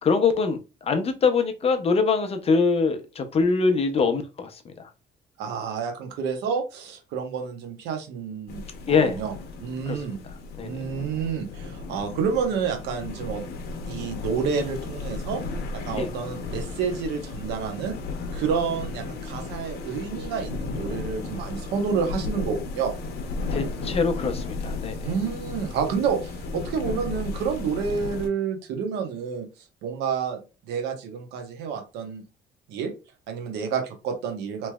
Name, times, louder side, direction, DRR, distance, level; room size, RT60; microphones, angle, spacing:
voice 1, 0.0-4.9 8.9-9.2 9.9-10.0 10.6-10.8 16.0-16.1 23.5-25.1, left 4 dB, 35° left, 7 dB, 0.6 m, -23 dB
voice 2, 5.4-9.3 9.6-10.2 10.6-13.4 13.9-15.4 15.7-18.0 18.3-22.9 25.0-29.5 29.8-32.2 32.7-32.9 33.3-34.7, right 6 dB, 85° right, 5 dB, 0.9 m, -29 dB
sound 1, 8.5-28.3, left 3 dB, 70° left, 0.8 m, -34 dB
3.1 x 3.0 x 2.3 m, 0.30 s
cardioid pair, 110°, 17 cm